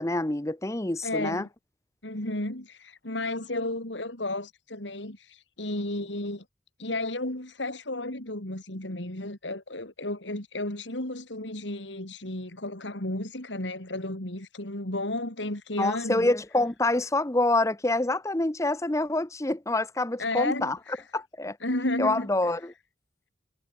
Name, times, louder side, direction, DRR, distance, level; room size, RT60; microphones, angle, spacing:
voice 1, 0.0-1.5 15.8-20.8 21.1-21.6 22.0-22.7, left 2 dB, 15° left, 0.8 m, -26 dB
voice 2, 1.0-1.5 2.0-6.4 6.8-16.3 20.2-21.1 21.6-22.3, left 2 dB, 90° left, 4.9 m, -33 dB
head